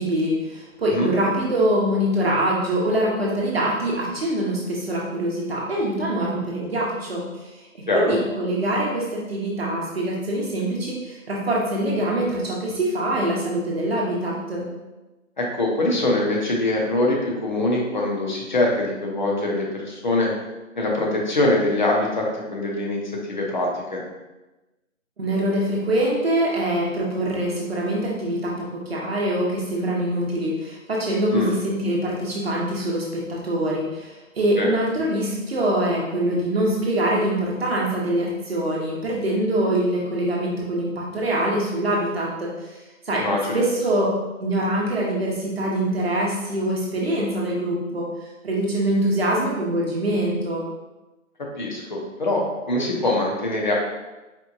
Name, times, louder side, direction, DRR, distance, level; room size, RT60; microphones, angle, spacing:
voice 1, 0.0-14.6 25.2-42.8 43.0-43.2 43.5-44.1 44.4-48.1 48.4-50.6, right 1 dB, 45° right, -4 dB, 0.9 m, -24 dB
voice 2, 15.4-20.3 20.7-22.2 22.5-24.0 31.3-31.5 34.6-34.7 43.2-43.6 51.6-53.7, left 2 dB, 35° left, -1 dB, 0.8 m, -23 dB
4.4 x 3.4 x 2.6 m, 1.1 s
figure-of-eight pair, 160°, 41 cm